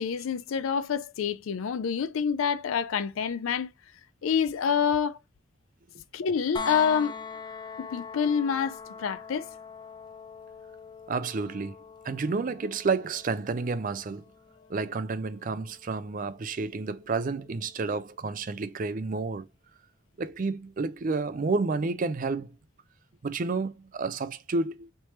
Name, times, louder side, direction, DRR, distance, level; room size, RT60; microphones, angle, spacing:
voice 1, 0.0-3.7 4.2-5.2 6.1-7.2 7.8-9.5, left 7 dB, 90° left, 0.4 m, -27 dB
sound 1, 6.6-18.4 20.3-20.4, left 5 dB, 20° left, 0.4 m, -43 dB
voice 2, 11.1-11.8 12.0-14.2 14.7-19.5 20.2-22.6 23.2-24.9, right 4 dB, 40° right, 0.4 m, -30 dB
3.3 x 3.1 x 4.2 m
head